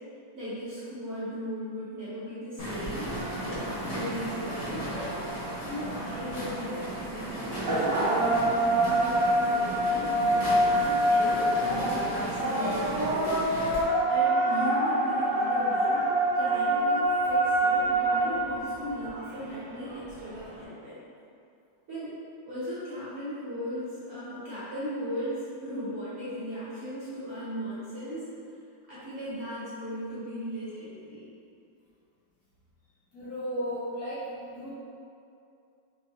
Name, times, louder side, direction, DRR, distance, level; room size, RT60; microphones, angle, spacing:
voice 1, 0.3-3.1 3.4-4.8 5.7-10.0 10.3-10.4 10.7-13.3 14.1-16.0 16.3-21.0 21.9-22.1 22.4-28.2 28.9-31.3, equal, 45° right, -11 dB, 1.0 m, -37 dB
sound 1, 2.6-13.8, right 1 dB, 45° left, 0.5 m, -36 dB
sound 2, 3.1-20.6, right 1 dB, 75° right, 1.6 m, -27 dB
voice 2, 33.1-34.2 34.5-34.7, equal, 70° left, -8 dB, 1.0 m, -34 dB
5.5 x 2.2 x 2.9 m, 2.5 s
omnidirectional pair, 2.0 m